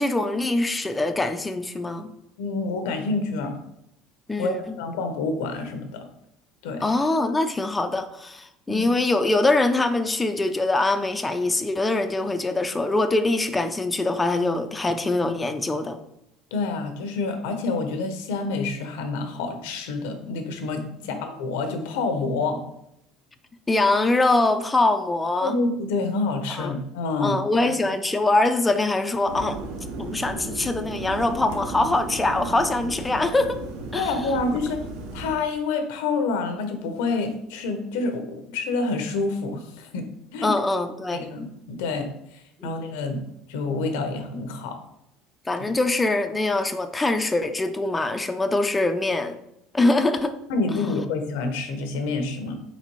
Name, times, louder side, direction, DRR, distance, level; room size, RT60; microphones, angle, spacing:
voice 1, 0.0-2.1 4.3-4.8 6.8-16.0 21.1-21.2 23.7-25.6 26.5-26.8 27.2-29.6 30.0-33.6 33.9-34.1 40.4-41.3 42.6-42.7 45.5-49.4 49.7-50.4 50.8-50.9, left 2 dB, 15° left, 7 dB, 0.4 m, -23 dB
voice 2, 2.4-3.6 4.4-6.1 6.6-6.8 8.7-8.9 16.5-22.6 25.4-27.4 33.9-34.8 35.1-40.1 40.3-40.5 41.1-43.2 43.5-44.8 50.5-52.6, left 3 dB, 85° left, 7 dB, 0.7 m, -28 dB
sound 1, 29.2-35.4, right 3 dB, 85° right, 0.7 m, -35 dB
4.1 x 4.1 x 3.1 m, 0.80 s
supercardioid pair, 110°, 0 cm